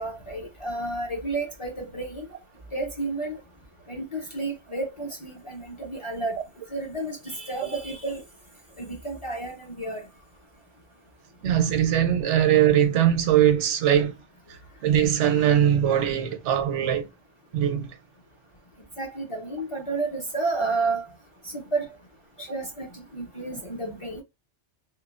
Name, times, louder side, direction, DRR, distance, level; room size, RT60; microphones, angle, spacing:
voice 1, 0.0-2.3 2.7-3.4 3.9-6.4 6.7-8.2 8.8-10.0 19.0-21.0 21.4-21.9 22.4-24.2, right 3 dB, 40° left, 0.5 m, -31 dB
voice 2, 11.4-14.2 14.5-17.1 17.5-18.0, right 10 dB, 85° right, 0.9 m, -21 dB
3.0 x 2.1 x 2.4 m
omnidirectional pair, 1.2 m